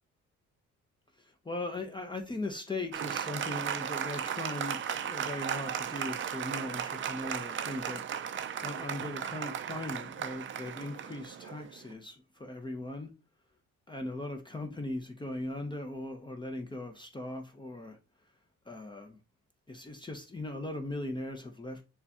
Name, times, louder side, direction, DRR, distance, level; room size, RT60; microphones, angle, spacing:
voice 1, 1.2-13.1 13.9-18.0 18.7-19.2 19.7-21.9, left 2 dB, 15° left, 0.6 m, -39 dB
Applause, 2.9-11.9, right 8 dB, 40° right, 0.4 m, -36 dB
6.6 x 2.3 x 2.8 m
cardioid pair, 90°, 30 cm